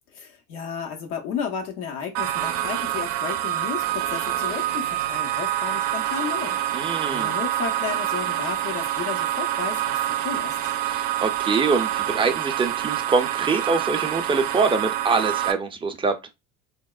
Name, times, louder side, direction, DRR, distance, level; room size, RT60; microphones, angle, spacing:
voice 1, 0.1-10.0 10.2-10.6, left 6 dB, 90° left, 0.8 m, -33 dB
sound 1, 2.1-15.5, right 13 dB, 80° right, 0.5 m, -26 dB
voice 2, 6.7-7.3 10.8-16.2, right 4 dB, 15° right, 0.4 m, -24 dB
3.4 x 2.0 x 2.3 m
supercardioid pair, 85°, 42 cm